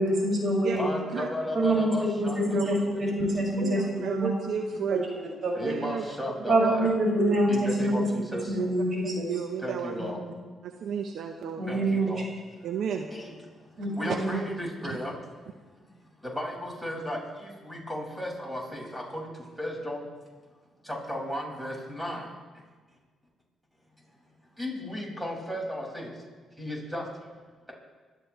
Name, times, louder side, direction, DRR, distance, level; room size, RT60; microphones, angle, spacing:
voice 1, 0.0-0.8 1.5-4.3 4.9-5.0 5.4-5.7 6.5-8.0 8.5-9.3 11.6-12.1 13.8-14.4, right 1 dB, 45° right, -2 dB, 6.7 m, -26 dB
voice 2, 0.7-3.0 5.5-7.0 7.5-8.4 9.6-10.2 11.7-12.2 13.1-13.3 14.0-15.1 16.3-19.3 19.6-20.0 21.1-22.2 24.6-26.1 26.6-27.0, left 1 dB, 5° right, -1 dB, 6.5 m, -34 dB
voice 3, 3.6-5.0 5.6-6.0 6.6-6.9 7.2-7.3 9.3-9.9 10.6-11.6 12.6-13.1 14.1-14.2 14.9-15.0, right 7 dB, 70° right, 4 dB, 1.0 m, -32 dB
27.5 x 13.0 x 3.4 m, 1.4 s
supercardioid pair, 60°, 0 cm